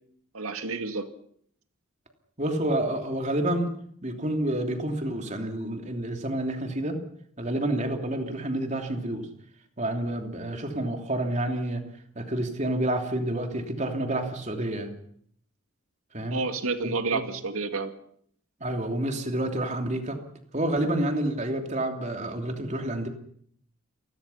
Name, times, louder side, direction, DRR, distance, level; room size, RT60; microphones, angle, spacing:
voice 1, 0.3-1.0 16.3-17.9, right 3 dB, 80° right, 8 dB, 2.2 m, -29 dB
voice 2, 2.4-3.7 4.0-7.0 7.4-9.3 9.8-11.8 12.1-14.9 16.1-16.4 16.8-17.2 18.6-20.2 20.5-23.1, right 1 dB, 35° right, 4 dB, 3.1 m, -29 dB
29.0 x 20.5 x 5.8 m, 0.64 s
head